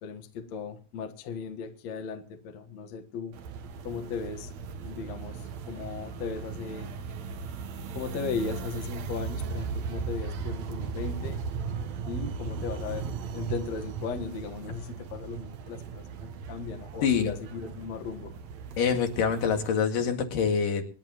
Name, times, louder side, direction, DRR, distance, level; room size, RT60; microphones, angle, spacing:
voice 1, 0.0-3.3 3.8-4.5 4.8-6.9 7.9-11.4 12.1-18.3, left 5 dB, 60° left, 2.5 m, -37 dB
sound 1, 3.3-19.7, right 5 dB, 60° right, 2.2 m, -37 dB
voice 2, 17.0-17.3 18.8-20.8, left 6 dB, 80° left, 3.6 m, -25 dB
26.0 x 11.0 x 3.0 m
omnidirectional pair, 3.9 m